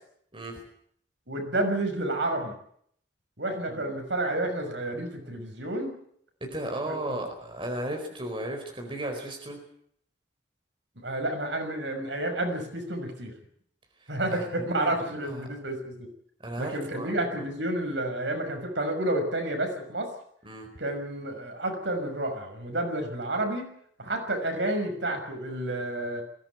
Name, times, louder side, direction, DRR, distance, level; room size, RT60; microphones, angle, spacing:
voice 1, 1.3-2.5 3.4-5.9 6.9-7.2 11.0-13.3 14.1-16.1 16.6-20.1 20.8-23.7 24.0-26.2, right 1 dB, 70° right, 4 dB, 6.0 m, -30 dB
voice 2, 6.4-9.6 14.3-15.5 16.4-17.4 20.4-20.7, right 1 dB, 25° right, 3 dB, 4.4 m, -35 dB
21.5 x 17.0 x 9.5 m, 0.67 s
head